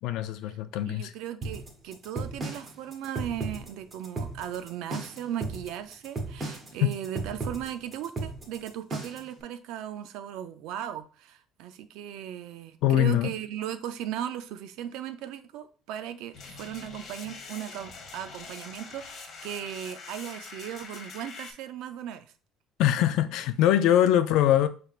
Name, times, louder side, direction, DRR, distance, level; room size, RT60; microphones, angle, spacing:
voice 1, 0.0-1.1 6.8-6.9 12.8-13.3 22.8-24.7, left 11 dB, 65° left, 0.4 m, -23 dB
voice 2, 0.9-22.3, right 10 dB, 70° right, 0.4 m, -37 dB
sound 1, 1.4-9.3, right 3 dB, 20° right, 0.9 m, -35 dB
sound 2, 16.3-21.5, left 4 dB, 35° left, 0.8 m, -44 dB
5.7 x 3.3 x 2.4 m
cardioid pair, 175°, 0 cm